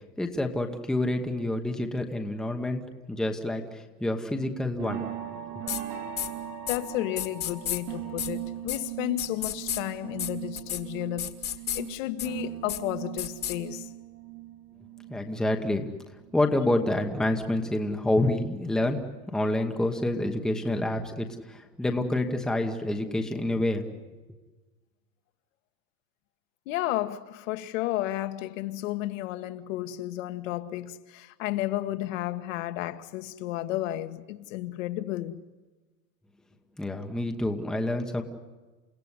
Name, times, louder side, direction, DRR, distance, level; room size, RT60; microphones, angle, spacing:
voice 1, 0.2-5.6 15.1-15.9 16.3-23.9 36.8-38.2, left 1 dB, ahead, 1.1 m, -28 dB
sound 1, 4.3-16.5 16.9-18.5 18.8-19.2 19.5-19.6, right 11 dB, 85° right, 4.4 m, -40 dB
sound 2, 5.7-5.8 6.2-6.3 6.7-6.8 7.2-7.8 8.2-8.3 8.7-8.8 9.2-9.8 10.2-10.3 10.6-10.8 11.2-11.8 12.2-12.3 12.7-12.8 13.2-13.6, left 10 dB, 20° left, 1.6 m, -31 dB
voice 2, 6.7-11.4 11.7-13.9 26.6-35.4, left 15 dB, 55° left, 1.6 m, -32 dB
29.5 x 17.0 x 9.7 m
supercardioid pair, 175°, 45 cm